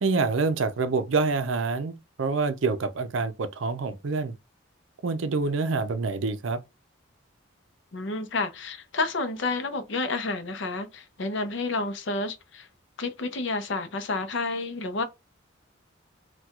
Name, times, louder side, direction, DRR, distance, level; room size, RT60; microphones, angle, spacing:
voice 1, 0.0-4.3 5.0-6.6, right 4 dB, 75° right, 0.5 m, -26 dB
voice 2, 7.9-12.7 13.0-15.0, left 3 dB, 65° left, 0.6 m, -30 dB
4.3 x 2.3 x 2.3 m
head